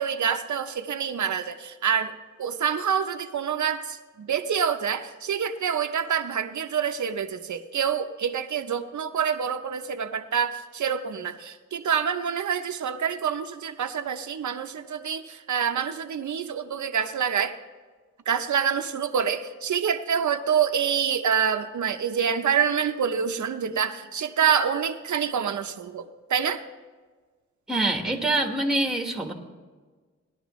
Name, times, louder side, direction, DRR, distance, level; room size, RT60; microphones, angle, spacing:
voice 1, 0.0-17.6 18.3-26.6, right 7 dB, 80° right, 7 dB, 0.7 m, -27 dB
voice 2, 27.7-29.3, right 2 dB, ahead, 3 dB, 1.4 m, -25 dB
19.0 x 11.5 x 3.1 m, 1.4 s
wide cardioid pair, 110°, 29 cm